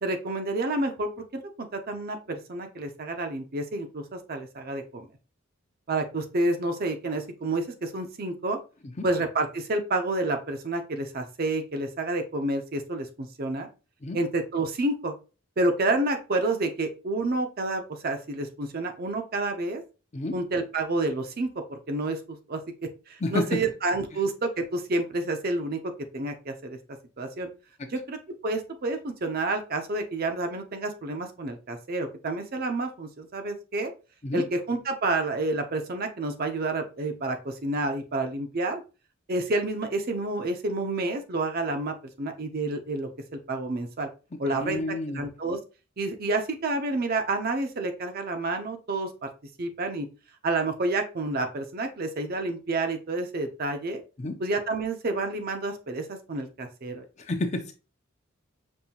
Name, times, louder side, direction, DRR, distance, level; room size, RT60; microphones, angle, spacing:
voice 1, 0.0-5.1 5.9-8.6 9.0-13.7 14.1-15.1 15.6-19.8 20.3-25.8 26.1-26.8 27.2-27.5 27.9-33.9 34.3-38.8 39.3-44.1 44.4-45.6 46.0-49.3 49.6-50.1 50.4-54.0 54.4-57.0, right 2 dB, 45° right, 6 dB, 0.6 m, -29 dB
voice 2, 23.2-23.6 27.8-27.9 34.2-34.4 44.5-45.3 54.2-54.4 57.2-57.7, left 2 dB, 35° left, 6 dB, 0.5 m, -30 dB
5.3 x 2.6 x 2.8 m, 0.33 s
head